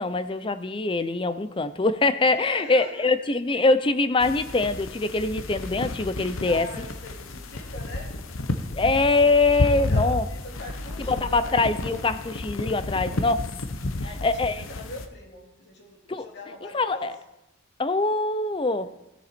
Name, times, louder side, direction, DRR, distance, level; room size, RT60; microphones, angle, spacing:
voice 1, 0.0-6.7 8.7-10.3 11.1-13.4 14.2-14.6 16.1-16.3 16.7-17.1 17.8-18.9, left 3 dB, 25° left, 13 dB, 0.5 m, -23 dB
voice 2, 2.3-3.1 6.4-8.1 9.7-11.9 13.0-13.3 14.0-17.1 18.8-18.9, left 1 dB, 55° left, -1 dB, 2.6 m, -42 dB
sound 1, 4.2-15.1, left 2 dB, 90° left, 0.9 m, -31 dB
16.0 x 7.1 x 4.3 m, 0.92 s
head